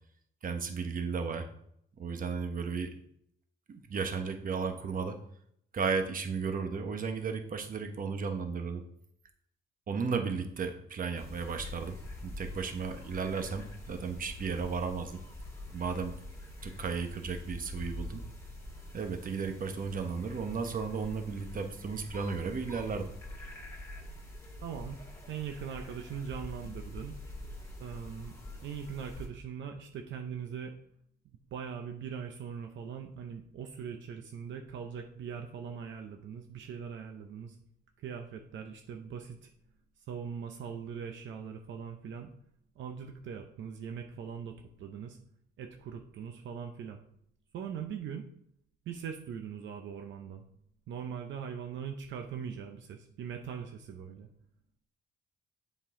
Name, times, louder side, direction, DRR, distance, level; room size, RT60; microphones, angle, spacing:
voice 1, 0.4-1.5 1.9-3.0 3.7-5.2 5.7-8.8 9.9-12.0 12.2-15.2 15.7-16.2 16.6-18.2 18.9-23.1, right 5 dB, 45° right, 6 dB, 1.0 m, -34 dB
sound 1, 11.2-29.3, left 1 dB, 15° left, 2.0 m, -45 dB
voice 2, 24.6-25.0 25.3-27.2 27.8-28.3 28.6-30.7 31.5-37.6 38.0-39.4 40.1-42.3 42.8-45.2 45.6-47.0 47.5-48.2 48.9-50.4 50.9-54.3, right 7 dB, 70° right, 4 dB, 0.7 m, -41 dB
7.3 x 5.4 x 3.7 m, 0.70 s
cardioid pair, 90°, 20 cm